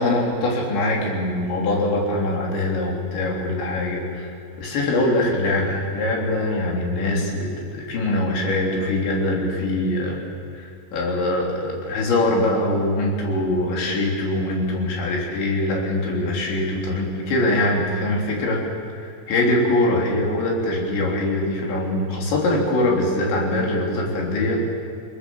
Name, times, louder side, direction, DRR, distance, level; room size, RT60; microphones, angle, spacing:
voice 1, 0.0-4.3 4.6-10.2 10.5-18.6 19.0-24.6, left 1 dB, 80° left, -1 dB, 5.8 m, -23 dB
28.5 x 20.0 x 7.3 m, 2.4 s
omnidirectional pair, 5.1 m